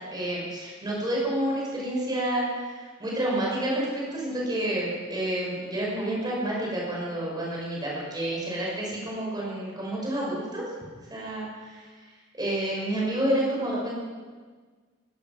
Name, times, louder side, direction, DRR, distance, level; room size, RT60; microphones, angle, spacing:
voice 1, 0.1-10.6 11.1-11.9 12.4-14.0, right 1 dB, 20° right, -4 dB, 5.6 m, -29 dB
16.5 x 13.5 x 6.0 m, 1.5 s
head